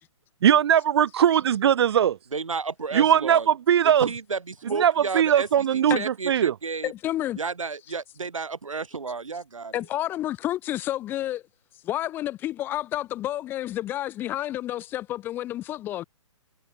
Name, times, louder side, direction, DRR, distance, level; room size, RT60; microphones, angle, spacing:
voice 1, 0.4-2.2 2.9-4.1 4.6-6.5, right 9 dB, 55° right, 0.9 m, -20 dB
voice 2, 2.3-3.5 4.0-6.9 7.4-9.7, right 4 dB, 90° right, 0.6 m, -32 dB
voice 3, 6.8-7.4 9.7-11.4 11.8-16.0, left 13 dB, 15° left, 0.4 m, -30 dB
figure-of-eight pair, 125°, 16 cm